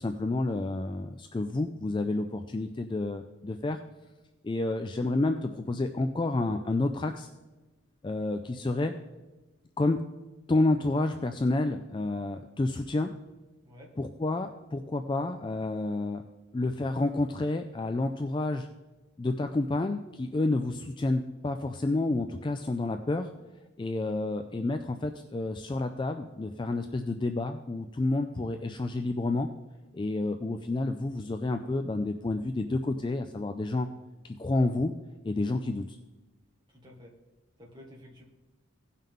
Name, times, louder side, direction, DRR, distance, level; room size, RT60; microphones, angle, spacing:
voice 1, 0.0-3.8 4.4-7.3 8.0-8.9 9.8-10.0 10.5-13.1 14.0-16.2 16.5-18.7 19.2-23.3 23.8-29.5 29.9-33.9 34.2-34.9 35.2-36.0, left 2 dB, 20° left, 7 dB, 0.3 m, -29 dB
voice 2, 36.7-37.1 37.6-38.2, left 1 dB, 20° right, -2 dB, 1.7 m, -51 dB
16.5 x 5.6 x 3.6 m, 1.1 s
head